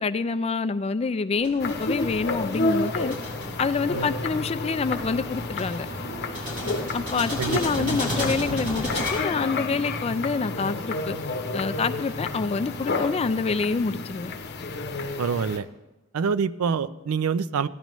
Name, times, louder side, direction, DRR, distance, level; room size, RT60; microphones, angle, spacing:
voice 1, 0.0-3.2 3.6-5.9 6.9-11.2 11.5-14.3, left 4 dB, 30° left, 0.3 m, -27 dB
sound 1, 1.4-9.1, equal, 35° right, 4.4 m, -35 dB
sound 2, 1.6-15.6, left 3 dB, 50° left, 0.8 m, -31 dB
voice 2, 7.4-8.0 15.2-15.7 16.1-17.7, right 6 dB, 70° right, 0.4 m, -26 dB
16.0 x 10.5 x 3.1 m
head